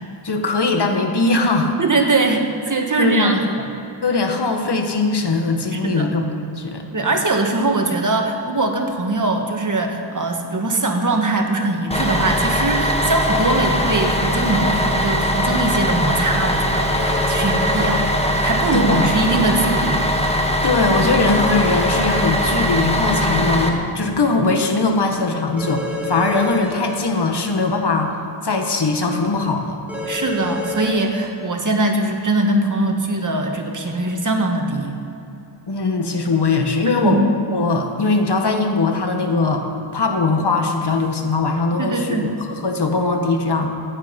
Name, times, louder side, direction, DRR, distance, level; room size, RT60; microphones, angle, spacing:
voice 1, 0.2-1.8 2.9-3.5 4.0-6.8 17.8-18.0 18.7-19.1 20.6-28.1 28.4-29.8 35.7-37.2 37.5-42.1 42.5-43.7, left 3 dB, 55° left, 3 dB, 1.7 m, -20 dB
voice 2, 1.8-3.4 5.7-6.1 6.9-18.0 18.4-20.0 30.1-35.0 37.0-37.2 41.8-42.2, right 2 dB, 40° right, 3 dB, 1.7 m, -21 dB
Bus, 11.9-23.7, equal, 10° left, 1.5 m, -20 dB
sound 1, 16.9-18.3 21.2-22.6 25.6-26.9 29.9-31.2, left 1 dB, 5° right, 3.1 m, -28 dB
15.5 x 9.9 x 5.4 m, 2.8 s
wide cardioid pair, 75°, 49 cm